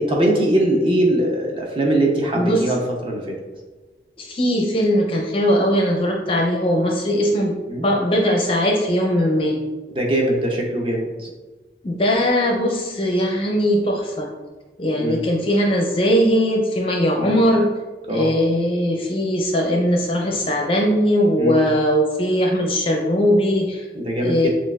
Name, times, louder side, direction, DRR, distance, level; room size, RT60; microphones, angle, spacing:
voice 1, 0.0-2.8 3.1-3.3 7.7-7.8 9.9-11.3 15.0-15.2 17.2-17.3 18.1-18.3 21.4-21.6 23.9-24.5, right 1 dB, 30° right, 0 dB, 0.6 m, -21 dB
voice 2, 4.2-7.5 7.8-9.6 11.8-14.3 14.8-17.7 18.1-23.8 24.2-24.5, equal, 30° left, 1 dB, 0.5 m, -19 dB
6.3 x 2.4 x 2.3 m, 1.3 s
head